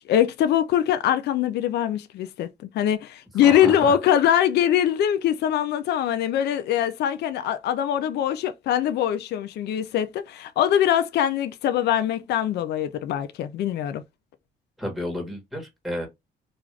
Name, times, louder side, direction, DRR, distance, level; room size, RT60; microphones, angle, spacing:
voice 1, 0.1-2.5 2.7-14.0, left 10 dB, 65° left, 0.4 m, -22 dB
voice 2, 3.4-3.9 14.8-16.1, left 1 dB, ahead, 1.2 m, -31 dB
2.4 x 2.4 x 3.2 m
cardioid pair, 105°, 18 cm